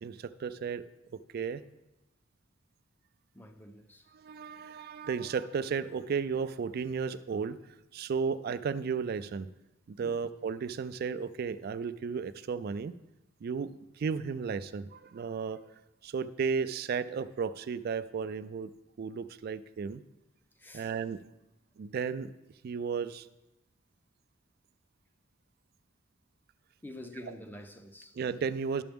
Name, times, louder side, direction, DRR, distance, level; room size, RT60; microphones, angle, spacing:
voice 1, 0.0-0.8 1.3-1.6 4.1-7.6 7.9-9.5 9.9-12.9 13.4-15.6 16.0-18.7 19.0-20.0 20.7-21.2 21.8-22.3 22.6-23.3 28.2-28.8, right 6 dB, 50° right, 0.3 m, -34 dB
voice 2, 3.3-4.1 10.0-10.2 20.6-21.0 26.8-28.2, left 1 dB, 10° left, 0.5 m, -47 dB
11.5 x 6.8 x 3.5 m
head